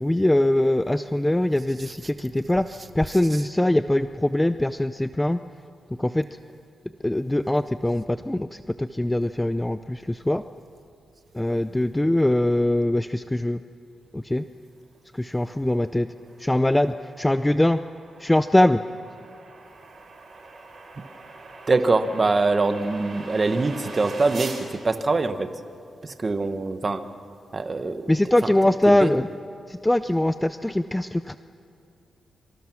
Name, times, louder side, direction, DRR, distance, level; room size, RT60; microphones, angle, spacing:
voice 1, 0.0-2.6 3.0-5.4 6.0-6.3 7.0-10.4 11.3-13.6 14.1-14.4 15.2-16.1 16.4-17.8 18.2-18.8 28.1-29.2 29.7-31.4, left 1 dB, 10° left, 11 dB, 0.5 m, -22 dB
voice 2, 1.8-2.1 2.7-3.5 21.7-25.5 26.0-27.1 27.5-29.2, right 3 dB, 30° right, 9 dB, 1.3 m, -25 dB
sound 1, 16.0-24.6, right 3 dB, 55° right, 4.8 m, -42 dB
26.0 x 25.0 x 6.2 m, 2.5 s
wide cardioid pair, 125°, 0 cm